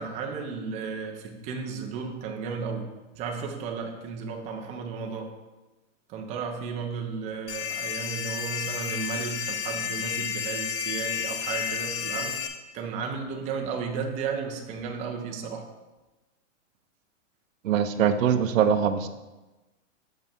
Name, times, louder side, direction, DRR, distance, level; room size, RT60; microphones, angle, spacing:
voice 1, 0.0-2.9 3.2-5.3 6.1-12.4 12.7-15.6, right 5 dB, 20° right, 2 dB, 0.6 m, -34 dB
sound 1, 7.5-12.5, left 7 dB, 50° left, 0.8 m, -31 dB
voice 2, 17.6-19.1, right 8 dB, 90° right, 9 dB, 0.8 m, -22 dB
6.9 x 5.5 x 4.4 m, 1.1 s
supercardioid pair, 155°, 38 cm